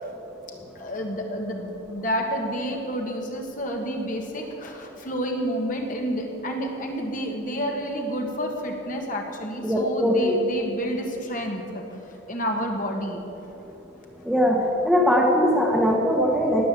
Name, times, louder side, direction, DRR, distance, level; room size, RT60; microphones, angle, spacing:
voice 1, 0.7-13.2, equal, 40° left, 2 dB, 1.6 m, -29 dB
voice 2, 9.6-10.4 14.2-14.6 14.8-16.7, equal, ahead, -1 dB, 1.4 m, -20 dB
19.0 x 7.5 x 7.5 m, 2.9 s
head